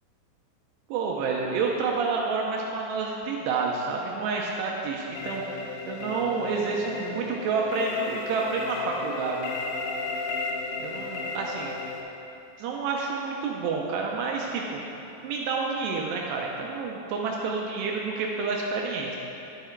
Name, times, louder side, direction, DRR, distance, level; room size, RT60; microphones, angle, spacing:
voice 1, 0.9-9.5 10.8-11.7 12.6-14.8 15.2-19.2, right 4 dB, 85° right, -1 dB, 2.4 m, -29 dB
sound 1, 5.2-12.0, left 3 dB, 90° left, 3.4 m, -34 dB
11.5 x 7.9 x 4.5 m, 2.8 s
omnidirectional pair, 5.8 m